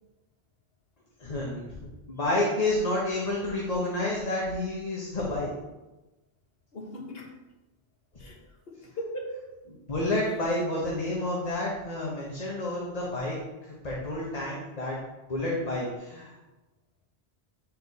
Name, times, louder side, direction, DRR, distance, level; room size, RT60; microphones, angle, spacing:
voice 1, 1.2-1.8 2.1-5.5 9.9-13.4 13.8-15.0 15.3-16.3, left 1 dB, 40° left, -4 dB, 1.2 m, -29 dB
voice 2, 6.7-7.4 8.2-9.5 10.4-10.5, equal, 65° left, 0 dB, 1.5 m, -39 dB
8.5 x 4.6 x 4.1 m, 1.1 s
omnidirectional pair, 1.1 m